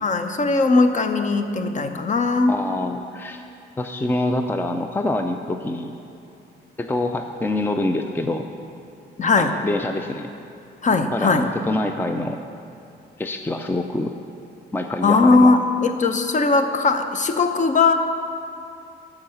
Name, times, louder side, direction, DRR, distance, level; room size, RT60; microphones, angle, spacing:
voice 1, 0.0-2.6 9.2-9.5 10.8-11.5 15.0-17.9, left 3 dB, 40° left, 8 dB, 0.7 m, -19 dB
voice 2, 2.5-3.4 3.8-5.9 6.8-8.4 9.4-10.3 11.1-12.4 13.2-14.1 14.7-15.5, left 2 dB, 10° left, 6 dB, 0.5 m, -25 dB
12.0 x 4.8 x 6.6 m, 2.7 s
cardioid pair, 90°, 20 cm